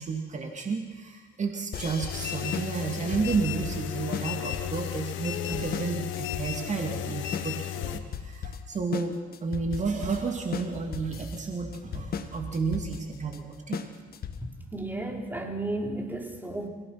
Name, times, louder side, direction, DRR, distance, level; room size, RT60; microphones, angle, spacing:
voice 1, 0.0-13.8, right 4 dB, 35° right, 3 dB, 2.6 m, -31 dB
sound 1, 1.7-14.6, left 7 dB, 50° left, 1.7 m, -37 dB
sound 2, 2.1-8.0, left 11 dB, 75° left, 1.6 m, -34 dB
voice 2, 14.4-16.7, right 2 dB, 10° right, 1 dB, 3.7 m, -33 dB
29.5 x 17.0 x 6.0 m, 1.5 s
cardioid pair, 100°, 20 cm